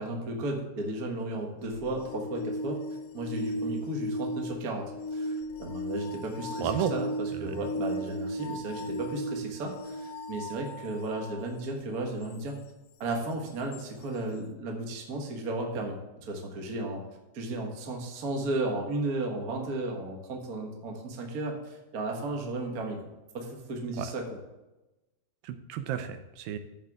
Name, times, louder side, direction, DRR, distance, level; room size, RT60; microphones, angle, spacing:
voice 1, 0.0-2.8 3.1-5.3 5.6-12.6 13.0-17.0 17.3-24.2, right 2 dB, 45° right, 1 dB, 1.1 m, -34 dB
sound 1, 1.7-11.4 13.7-13.8, equal, 80° left, 2.5 m, -36 dB
voice 2, 6.6-6.9 7.4-7.5 24.0-24.1 25.4-26.6, right 9 dB, 85° right, 10 dB, 2.4 m, -32 dB
13.0 x 7.9 x 3.6 m, 1.0 s
omnidirectional pair, 4.0 m